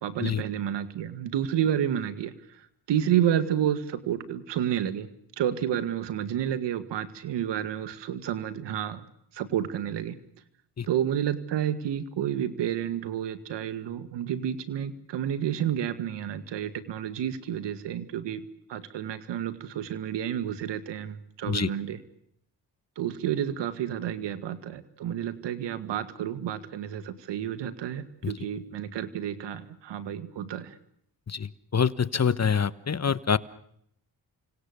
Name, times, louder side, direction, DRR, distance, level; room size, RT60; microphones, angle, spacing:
voice 1, 0.0-2.3 2.9-5.1 5.4-9.0 9.3-10.2 10.9-18.4 18.7-22.0 23.0-30.7, right 10 dB, 85° right, 12 dB, 2.0 m, -30 dB
voice 2, 31.3-33.4, left 6 dB, 40° left, 16 dB, 1.3 m, -26 dB
30.0 x 25.5 x 6.8 m, 0.71 s
supercardioid pair, 55°, 42 cm